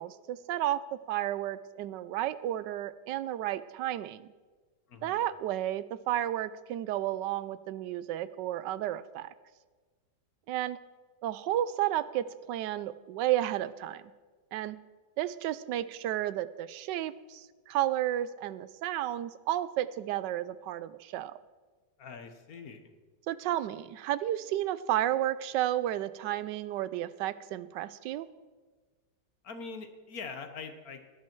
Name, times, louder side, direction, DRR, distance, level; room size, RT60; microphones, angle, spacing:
voice 1, 0.0-4.2 5.0-9.3 10.5-10.8 11.2-14.0 14.5-14.8 15.2-21.4 23.3-28.3, right 13 dB, 90° right, 16 dB, 1.2 m, -32 dB
voice 2, 4.9-5.2 22.0-22.9 29.4-31.0, left 5 dB, 60° left, 7 dB, 1.6 m, -43 dB
17.0 x 10.5 x 4.5 m, 1.4 s
omnidirectional pair, 1.8 m